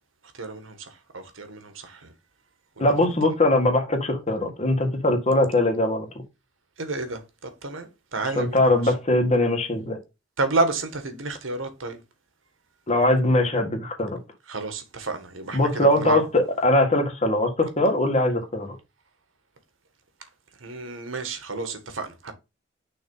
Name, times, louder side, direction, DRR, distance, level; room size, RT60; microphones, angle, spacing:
voice 1, 0.3-2.1 2.8-3.1 6.8-8.9 10.4-12.0 14.5-16.3 20.6-22.3, right 3 dB, 90° right, 1.5 m, -30 dB
voice 2, 2.8-6.1 8.4-10.0 12.9-14.2 15.5-18.8, left 1 dB, 35° left, 1.8 m, -21 dB
6.2 x 3.4 x 5.5 m
head